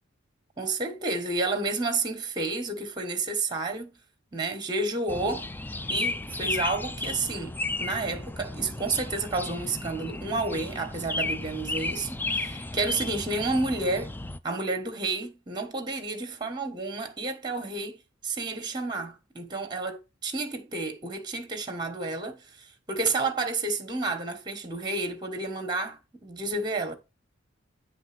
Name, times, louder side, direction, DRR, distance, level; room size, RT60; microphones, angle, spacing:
voice 1, 0.6-4.0 4.3-5.5 5.9-14.1 14.4-18.0 18.2-26.9, right 3 dB, 20° right, 1.3 m, -30 dB
sound 1, 5.1-14.4, left 2 dB, 10° left, 0.4 m, -34 dB
9.9 x 3.3 x 6.0 m
head